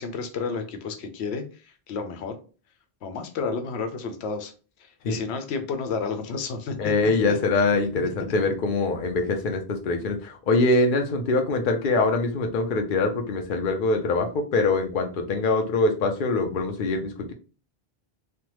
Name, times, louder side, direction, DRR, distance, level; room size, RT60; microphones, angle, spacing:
voice 1, 0.0-2.4 3.0-4.5 5.1-7.4 7.7-8.3, left 5 dB, 90° left, 6 dB, 0.9 m, -31 dB
voice 2, 6.8-17.3, left 3 dB, 55° left, 5 dB, 0.7 m, -24 dB
3.3 x 2.1 x 2.9 m, 0.36 s
omnidirectional pair, 1.1 m